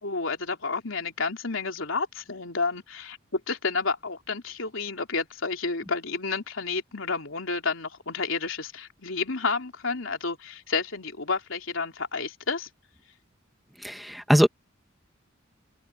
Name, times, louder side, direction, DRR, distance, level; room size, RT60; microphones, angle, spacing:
voice 1, 0.0-12.7, left 4 dB, 75° left, 3.2 m, -30 dB
voice 2, 13.8-14.5, equal, ahead, 1.5 m, -21 dB
open air
head